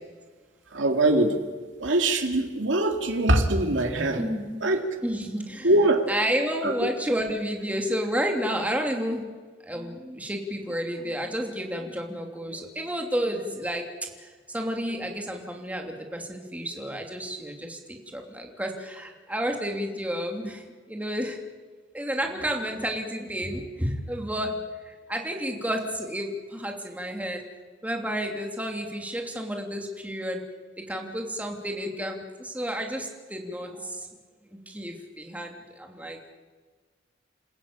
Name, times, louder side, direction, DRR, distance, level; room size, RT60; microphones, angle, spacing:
voice 1, 0.7-1.4 1.8-4.2 4.6-4.9 5.6-6.0 6.6-6.9, right 1 dB, 80° right, 3 dB, 2.6 m, -22 dB
voice 2, 4.2-4.7 5.0-5.7 6.1-9.3 9.6-13.9 14.2-21.4 21.9-27.4 27.8-30.4 30.8-34.1 34.5-36.3, equal, 10° right, 2 dB, 2.9 m, -31 dB
28.5 x 16.0 x 8.8 m, 1.5 s
head